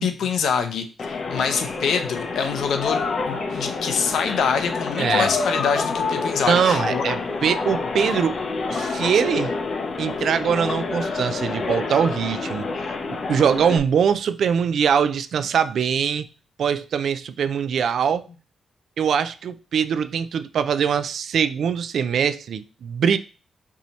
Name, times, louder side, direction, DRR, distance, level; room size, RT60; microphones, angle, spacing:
voice 1, 0.0-7.0, left 6 dB, 85° left, 0.7 m, -25 dB
sound 1, 1.0-13.8, left 4 dB, 45° left, 0.6 m, -27 dB
voice 2, 5.0-5.3 6.5-8.3 8.7-9.5 10.0-12.7 13.3-16.3 16.6-18.2 19.0-23.2, right 7 dB, 65° right, 0.3 m, -22 dB
4.7 x 2.8 x 4.0 m
wide cardioid pair, 145°, 0 cm